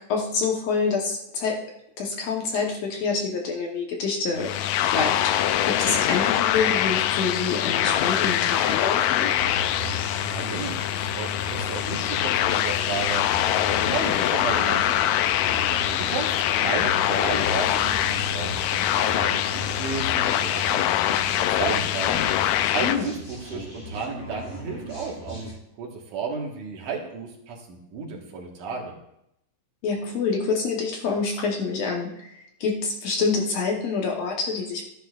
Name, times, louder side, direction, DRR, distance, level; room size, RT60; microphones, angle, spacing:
voice 1, 0.1-1.6 2.0-9.3 22.8-23.1 29.8-34.9, left 4 dB, 65° left, 0 dB, 2.0 m, -27 dB
sound 1, 4.4-23.0, left 11 dB, 80° left, 1.6 m, -24 dB
sound 2, 9.3-25.5, equal, 25° left, 1.2 m, -38 dB
voice 2, 10.2-13.5 13.8-15.2 15.9-22.4 22.7-25.5 25.8-28.9, right 5 dB, 75° right, 0 dB, 3.0 m, -33 dB
13.5 x 10.0 x 2.4 m, 0.81 s
omnidirectional pair, 3.6 m